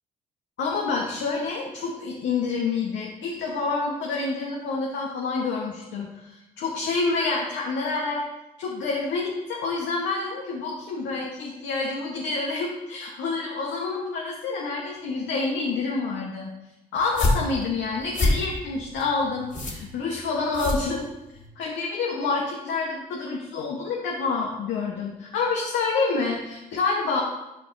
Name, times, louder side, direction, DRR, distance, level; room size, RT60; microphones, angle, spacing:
voice 1, 0.6-8.2 8.6-16.5 16.9-21.1 21.6-27.2, left 4 dB, 65° left, -2 dB, 1.2 m, -28 dB
sound 1, 17.0-21.5, left 2 dB, 40° left, 2.1 m, -27 dB
11.5 x 5.2 x 2.7 m, 0.95 s
hypercardioid pair, 45°, 20 cm